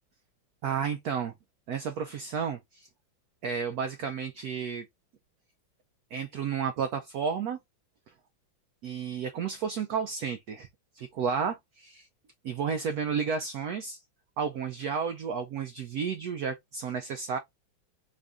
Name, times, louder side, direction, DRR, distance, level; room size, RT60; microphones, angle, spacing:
voice 1, 0.6-1.3 1.7-2.9 3.4-4.9 6.1-7.6 8.8-10.7 10.9-12.1 12.4-14.0 14.4-17.4, right 6 dB, 85° right, 0.8 m, -32 dB
3.8 x 2.5 x 3.4 m
omnidirectional pair, 2.2 m